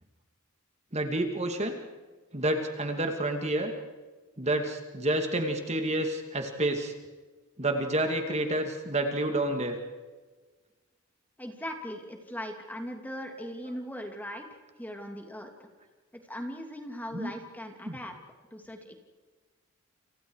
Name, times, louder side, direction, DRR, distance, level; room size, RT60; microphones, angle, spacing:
voice 1, 0.9-1.7 2.3-3.7 4.4-6.9 7.6-9.7 17.1-17.3 17.9-18.0, right 1 dB, 30° right, 5 dB, 2.5 m, -29 dB
voice 2, 11.4-14.5 14.8-15.7 16.1-18.1 18.5-19.0, equal, 10° left, 3 dB, 2.9 m, -39 dB
29.5 x 28.5 x 4.9 m, 1.3 s
head